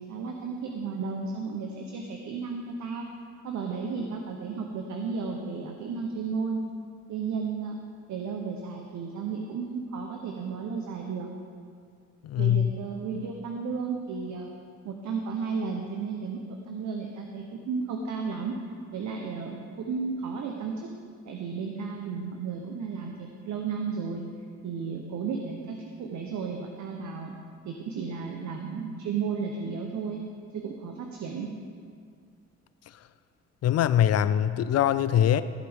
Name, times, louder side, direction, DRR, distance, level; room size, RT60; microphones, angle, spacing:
voice 1, 0.0-3.1 3.4-6.6 7.1-7.8 8.1-11.3 12.4-14.5 14.8-16.4 16.7-18.6 18.9-20.9 21.3-24.2 24.6-27.4 27.6-30.2 30.5-31.5, right 5 dB, 70° right, 2 dB, 1.0 m, -33 dB
voice 2, 12.2-12.7 33.6-35.4, left 10 dB, 55° left, 14 dB, 0.5 m, -22 dB
15.0 x 7.8 x 3.6 m, 2.1 s
cardioid pair, 90°, 30 cm